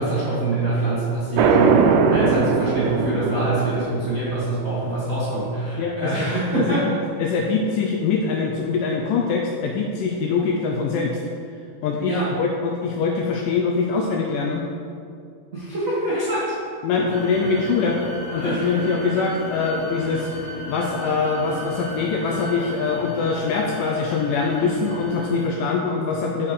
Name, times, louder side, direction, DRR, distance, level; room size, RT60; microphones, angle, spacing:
voice 1, 0.0-6.9 12.0-12.3 15.5-16.5 17.0-17.1 18.3-18.8, right 2 dB, 60° right, -11 dB, 0.8 m, -25 dB
sound 1, 1.4-4.2, right 5 dB, 90° right, 2.5 m, -19 dB
voice 2, 5.8-6.9 7.2-11.2 11.8-14.6 16.8-18.0 18.3-26.5, left 4 dB, 85° left, 0 dB, 1.9 m, -23 dB
sound 2, 17.1-25.4, right 1 dB, 45° left, 2.6 m, -35 dB
6.6 x 5.8 x 4.8 m, 2.4 s
omnidirectional pair, 4.4 m